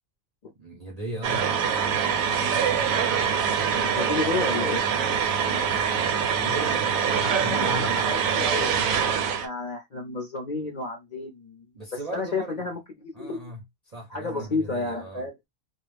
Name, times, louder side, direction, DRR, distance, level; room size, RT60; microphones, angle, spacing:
voice 1, 0.6-1.6 5.1-8.0 11.7-12.7 13.1-15.3, right 1 dB, 45° right, 0.5 m, -38 dB
sound 1, 1.2-9.5, right 7 dB, 80° right, 1.0 m, -24 dB
voice 2, 3.7-4.8 7.2-8.7 9.2-11.7 12.1-13.5 14.1-15.3, left 3 dB, 50° left, 0.5 m, -31 dB
2.3 x 2.0 x 3.2 m
omnidirectional pair, 1.4 m